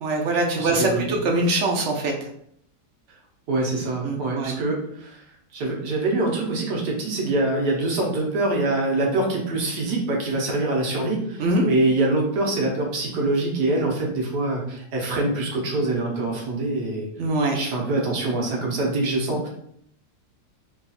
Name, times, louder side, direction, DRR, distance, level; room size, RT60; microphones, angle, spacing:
voice 1, 0.0-2.1 4.0-4.5 11.4-11.7 17.2-17.6, right 2 dB, 60° right, 1 dB, 0.8 m, -23 dB
voice 2, 0.6-1.0 3.5-5.2 5.5-17.1 17.5-19.5, right 2 dB, 85° right, -1 dB, 1.6 m, -24 dB
3.4 x 2.4 x 4.1 m, 0.70 s
omnidirectional pair, 1.8 m